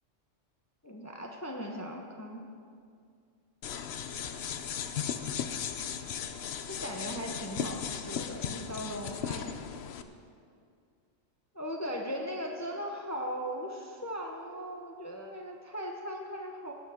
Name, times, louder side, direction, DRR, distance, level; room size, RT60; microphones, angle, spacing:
voice 1, 0.8-2.5 6.7-9.6 11.5-16.7, equal, 15° left, 1 dB, 0.8 m, -38 dB
sound 1, 3.6-10.0, left 8 dB, 65° left, 0.9 m, -36 dB
18.0 x 8.4 x 5.0 m, 2.2 s
omnidirectional pair, 1.2 m